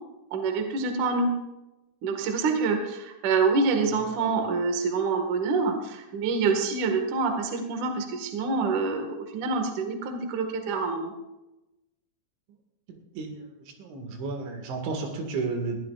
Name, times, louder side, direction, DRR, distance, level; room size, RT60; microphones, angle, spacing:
voice 1, 0.3-1.3 2.0-11.1, right 4 dB, 55° right, 4 dB, 2.6 m, -26 dB
voice 2, 13.2-13.5 13.8-15.8, right 4 dB, 80° right, 3 dB, 4.3 m, -32 dB
21.0 x 15.0 x 2.5 m, 0.99 s
omnidirectional pair, 5.3 m